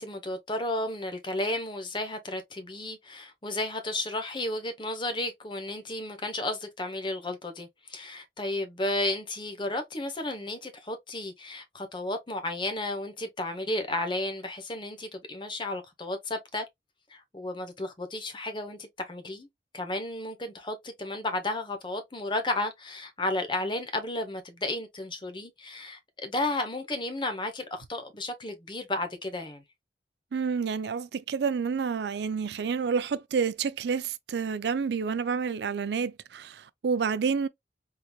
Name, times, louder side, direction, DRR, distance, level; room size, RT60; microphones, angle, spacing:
voice 1, 0.0-16.7 17.1-19.5 19.7-29.6, left 2 dB, 25° left, 0.9 m, -33 dB
voice 2, 30.3-37.5, right 6 dB, 75° right, 0.4 m, -29 dB
3.8 x 3.0 x 2.3 m
head